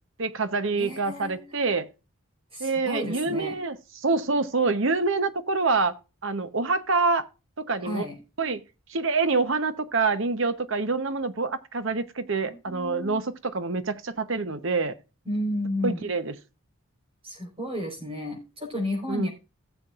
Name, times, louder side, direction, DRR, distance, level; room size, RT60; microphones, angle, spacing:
voice 1, 0.2-1.9 2.6-3.8 4.0-6.0 6.2-7.2 7.6-8.0 8.4-8.6 8.9-14.9 15.8-16.3 19.1-19.3, right 4 dB, 60° right, 11 dB, 0.9 m, -26 dB
voice 2, 0.7-1.5 2.5-3.6 7.8-8.2 12.4-13.2 15.2-16.1 17.2-19.3, left 1 dB, 25° right, 3 dB, 4.4 m, -32 dB
17.5 x 7.2 x 2.5 m, 0.30 s
head